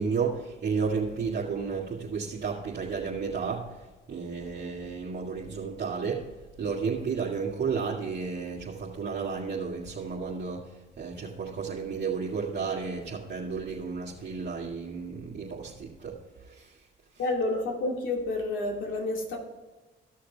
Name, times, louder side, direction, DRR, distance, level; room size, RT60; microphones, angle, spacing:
voice 1, 0.0-6.3 6.6-16.8, right 5 dB, 55° right, -6 dB, 1.8 m, -32 dB
voice 2, 17.2-19.4, left 2 dB, 75° left, 1 dB, 2.5 m, -29 dB
14.5 x 6.4 x 3.4 m, 1.2 s
cardioid pair, 90°, 20 cm